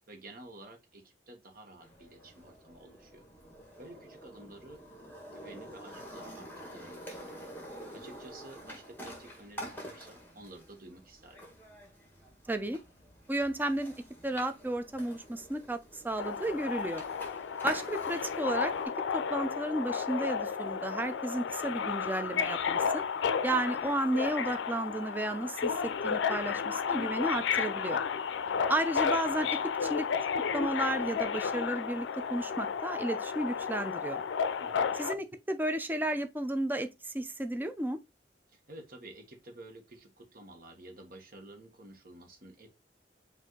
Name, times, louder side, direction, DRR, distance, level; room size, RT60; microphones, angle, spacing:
voice 1, 0.1-3.2 3.8-4.8 5.3-7.4 7.9-11.4 28.4-28.7 34.6-35.0 38.5-42.7, right 2 dB, 50° right, 1.2 m, -51 dB
sound 1, 1.8-18.9, equal, 10° left, 1.5 m, -47 dB
voice 2, 12.5-12.8 13.3-13.9 14.2-17.0 17.6-18.7 19.1-23.0 23.4-28.0 28.7-30.1 30.5-34.2 35.0-38.0, right 1 dB, 10° right, 0.4 m, -33 dB
Subway metro underground, 16.2-35.1, left 6 dB, 85° left, 0.4 m, -32 dB
5.3 x 2.6 x 3.8 m
head